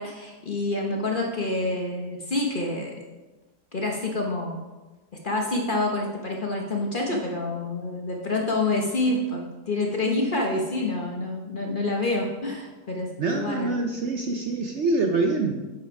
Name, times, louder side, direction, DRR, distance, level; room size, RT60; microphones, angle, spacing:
voice 1, 0.0-3.0 3.7-4.6 5.2-13.1 13.3-13.8, left 2 dB, 40° left, 0 dB, 0.8 m, -27 dB
voice 2, 13.2-15.5, right 3 dB, 60° right, 4 dB, 0.8 m, -25 dB
7.7 x 5.5 x 4.7 m, 1.2 s
omnidirectional pair, 1.7 m